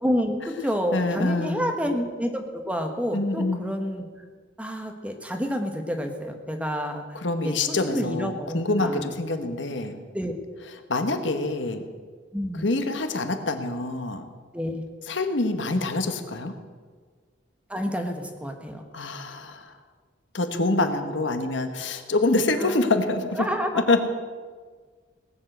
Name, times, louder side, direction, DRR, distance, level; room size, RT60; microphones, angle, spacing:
voice 1, 0.0-4.1 4.6-7.0 7.4-9.1 10.1-10.3 12.3-12.6 14.5-14.8 17.7-18.8 22.6-22.8 23.4-23.9, equal, 5° right, 4 dB, 1.3 m, -29 dB
voice 2, 0.9-1.7 3.1-3.6 7.1-10.0 10.9-11.8 12.6-14.2 15.1-16.6 18.9-19.7 20.3-23.5 23.9-24.0, left 2 dB, 75° left, 7 dB, 1.3 m, -26 dB
18.5 x 7.4 x 8.0 m, 1.5 s
head